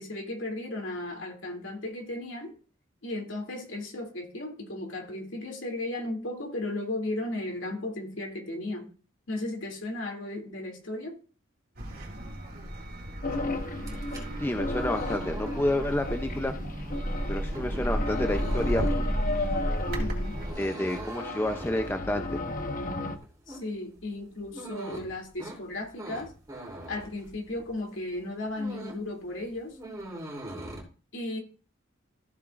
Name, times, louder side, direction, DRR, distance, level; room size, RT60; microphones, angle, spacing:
voice 1, 0.0-2.5 3.0-8.9 9.3-11.2 19.9-20.4 23.5-26.3 26.9-29.8 31.1-31.4, left 2 dB, 65° left, 2 dB, 2.6 m, -35 dB
sound 1, 11.8-20.5, equal, 50° right, 3.1 m, -32 dB
sound 2, 13.2-23.2, left 2 dB, 40° left, 0.9 m, -35 dB
sound 3, 13.7-27.8 28.2-29.1 29.4-30.8, right 1 dB, 20° right, 3.0 m, -42 dB
voice 2, 14.4-16.5 17.3-18.9 20.6-22.4, left 1 dB, 10° left, 6 dB, 0.5 m, -29 dB
14.5 x 7.3 x 2.5 m, 0.37 s
head